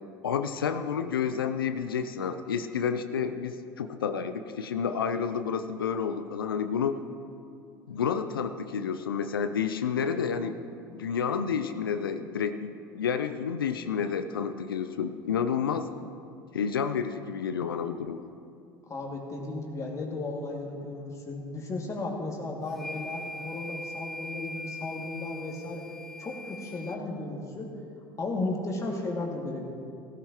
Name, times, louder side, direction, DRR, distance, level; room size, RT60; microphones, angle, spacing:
voice 1, 0.2-7.0 7.9-10.6 10.9-15.9 16.5-18.2, left 7 dB, 85° left, 9 dB, 0.5 m, -30 dB
voice 2, 18.9-25.8 26.2-27.7 28.2-29.7, left 2 dB, 25° left, -1 dB, 2.3 m, -34 dB
sound 1, 22.7-27.0, left 1 dB, 5° left, 0.5 m, -41 dB
16.0 x 14.0 x 3.0 m, 2.5 s
hypercardioid pair, 75°, 12 cm